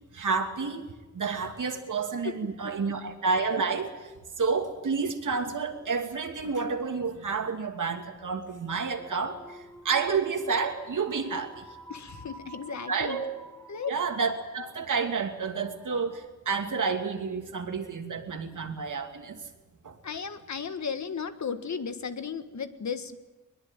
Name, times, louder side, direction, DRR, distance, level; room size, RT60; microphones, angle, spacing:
voice 1, 0.1-4.1 4.4-11.7 12.9-13.2 13.9-19.4 19.8-20.0, right 5 dB, 80° right, 5 dB, 2.8 m, -30 dB
sound 1, 9.0-16.3, right 1 dB, 10° left, 2.0 m, -50 dB
voice 2, 11.9-13.2 13.7-13.9 20.0-23.2, left 6 dB, 65° left, 9 dB, 1.7 m, -35 dB
22.0 x 22.0 x 9.1 m, 1.1 s
wide cardioid pair, 155°, 31 cm